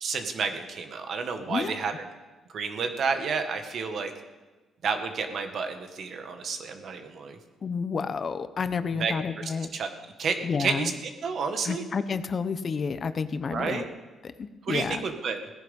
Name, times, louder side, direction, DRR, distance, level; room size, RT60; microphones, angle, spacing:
voice 1, 0.0-1.9 2.5-4.1 4.8-7.4 8.9-9.9 10.2-11.8 13.5-13.9 14.6-15.4, right 5 dB, 60° right, 6 dB, 1.7 m, -30 dB
voice 2, 7.6-9.7 10.4-10.9 11.6-13.8 14.2-15.0, left 5 dB, 45° left, 11 dB, 0.9 m, -30 dB
17.5 x 10.5 x 5.4 m, 1.2 s
cardioid pair, 90°, 0 cm